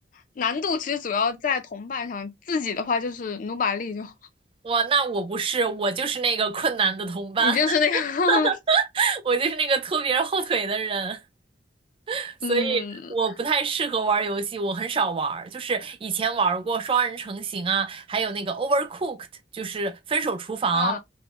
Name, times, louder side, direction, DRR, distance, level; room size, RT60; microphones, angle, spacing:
voice 1, 0.4-4.1 7.4-8.5 12.4-13.0 20.7-21.0, left 5 dB, 45° left, 0.4 m, -26 dB
voice 2, 4.6-7.6 7.9-8.0 8.3-11.2 12.1-12.8 13.1-19.3 19.5-21.0, right 5 dB, 30° right, 0.4 m, -25 dB
3.6 x 2.1 x 2.3 m
head